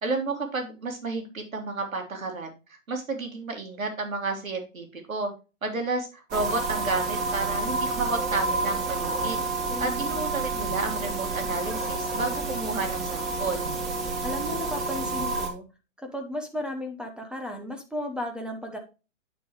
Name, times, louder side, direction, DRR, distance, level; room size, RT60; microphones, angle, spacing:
voice 1, 0.0-5.3 5.6-9.4 9.8-13.7, right 3 dB, 85° right, 4 dB, 3.3 m, -31 dB
sound 1, 6.3-15.5, right 3 dB, 25° right, 2.8 m, -29 dB
voice 2, 9.7-10.1 14.2-15.7 16.0-18.8, left 1 dB, ahead, 4 dB, 0.9 m, -34 dB
9.4 x 6.3 x 3.1 m, 0.30 s
hypercardioid pair, 130°, 40 cm